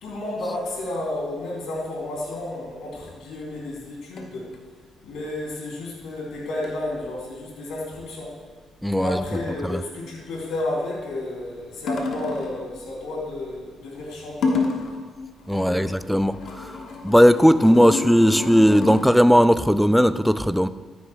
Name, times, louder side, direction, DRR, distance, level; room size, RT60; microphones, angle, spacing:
voice 1, 0.0-4.5 5.0-8.3 9.0-14.7 15.5-16.0, left 2 dB, 85° left, 3.1 m, -32 dB
sound 1, 2.9-3.1 4.2-4.5 6.6-6.8 7.0-7.1 9.3-9.9 11.9-12.7 14.4-15.1 15.4-19.1, left 4 dB, 65° left, 1.3 m, -30 dB
voice 2, 8.8-9.2 9.6-9.8 15.5-16.7 17.0-20.7, equal, ahead, 0.4 m, -17 dB
14.5 x 9.6 x 2.3 m
cardioid pair, 90°, 0 cm